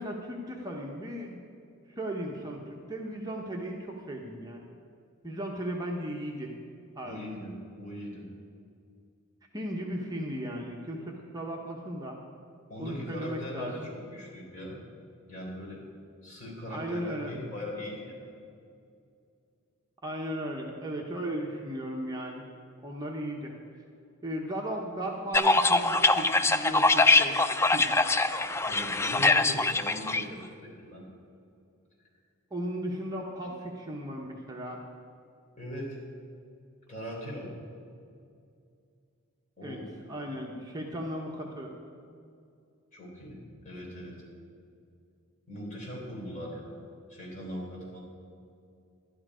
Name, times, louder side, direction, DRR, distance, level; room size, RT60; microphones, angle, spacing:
voice 1, 0.0-1.4 1.9-4.7 5.2-6.5 7.0-7.2 9.5-12.2 12.8-13.7 16.7-17.3 20.0-22.4 22.8-23.5 24.2-27.4 27.7-28.0 32.5-34.8 39.6-39.8 40.1-41.7, equal, 20° right, -1 dB, 0.9 m, -36 dB
voice 2, 7.0-8.3 12.7-14.8 15.3-15.9 16.2-18.3 28.6-31.0 33.4-33.5 35.6-36.0 36.9-37.5 39.6-39.9 42.9-44.2 45.5-46.8 47.1-48.0, equal, 35° left, -4 dB, 3.6 m, -40 dB
sound 1, 25.3-30.2, left 2 dB, 15° left, 0.3 m, -23 dB
12.0 x 10.5 x 5.0 m, 2.4 s
head